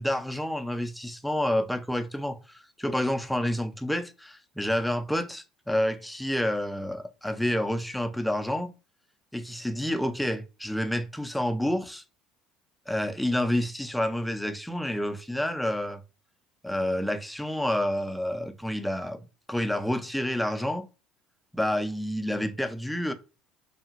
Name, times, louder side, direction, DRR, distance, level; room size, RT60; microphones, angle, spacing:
voice 1, 0.0-8.7 9.3-12.0 12.9-16.0 16.6-20.9 21.5-23.1, left 1 dB, 5° left, 0.4 m, -29 dB
2.8 x 2.4 x 2.4 m
hypercardioid pair, 70°, 0 cm